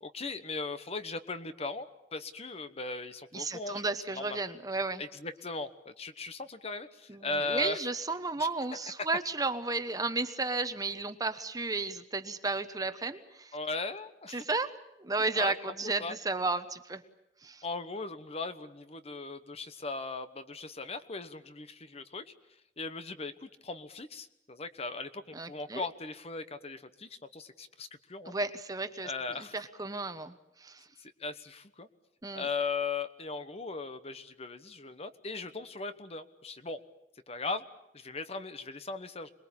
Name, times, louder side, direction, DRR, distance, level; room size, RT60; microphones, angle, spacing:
voice 1, 0.0-4.4 5.0-7.8 13.5-14.4 15.3-16.2 17.6-22.3 22.8-28.3 29.0-29.6 31.0-31.9 32.3-36.8 37.3-37.6 37.9-39.3, left 3 dB, 35° left, 11 dB, 1.2 m, -38 dB
voice 2, 3.3-5.0 7.1-13.5 14.3-17.0 17.4-17.6 25.3-25.9 28.3-29.1 29.4-30.9 32.2-32.5, right 3 dB, 20° right, 10 dB, 1.1 m, -33 dB
27.0 x 21.5 x 8.7 m, 0.82 s
head